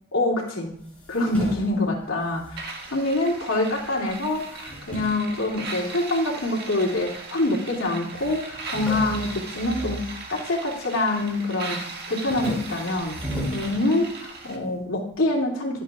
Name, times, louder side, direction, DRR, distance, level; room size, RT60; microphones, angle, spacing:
voice 1, 0.1-0.7 1.1-15.8, left 2 dB, 80° left, -2 dB, 2.8 m, -26 dB
sound 1, 0.7-3.4 3.7-6.2 6.8-7.5 7.8-7.9 8.1-10.7 11.1-11.5 11.9-14.5, equal, 5° left, 5.7 m, -37 dB
sound 2, 2.6-14.6, right 3 dB, 50° right, 1.8 m, -38 dB
25.5 x 8.5 x 2.5 m, 0.66 s
head